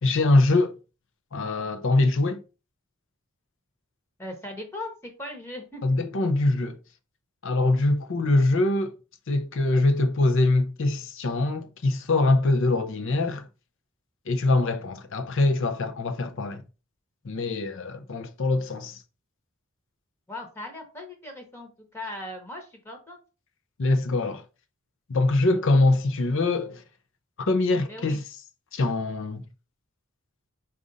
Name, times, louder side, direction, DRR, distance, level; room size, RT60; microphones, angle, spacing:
voice 1, 0.0-0.8 1.3-2.4 5.8-6.8 7.4-8.9 9.3-13.5 14.3-16.6 17.2-19.0 23.8-24.4 25.1-26.8 27.4-28.2 28.7-29.4, left 2 dB, 65° left, 0.6 m, -23 dB
voice 2, 4.2-5.8 20.3-23.2 27.9-28.2, left 1 dB, 15° left, 1.1 m, -38 dB
5.0 x 2.6 x 3.9 m
head